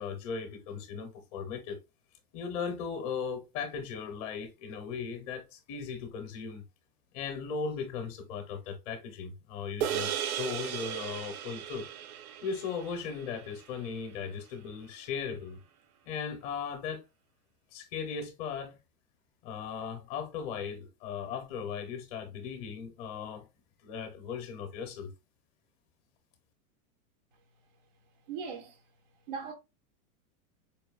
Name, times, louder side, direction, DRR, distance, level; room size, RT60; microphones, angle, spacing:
voice 1, 0.0-1.8 2.3-6.6 7.1-11.9 12.4-15.6 16.0-17.0 17.7-18.8 19.4-23.5 23.8-25.1, left 6 dB, 25° left, 0.6 m, -37 dB
sound 1, 9.8-14.4, right 10 dB, 80° right, 0.7 m, -36 dB
voice 2, 28.3-28.8 29.3-29.5, right 5 dB, 35° right, 0.4 m, -38 dB
4.8 x 2.6 x 2.3 m
supercardioid pair, 175°, 43 cm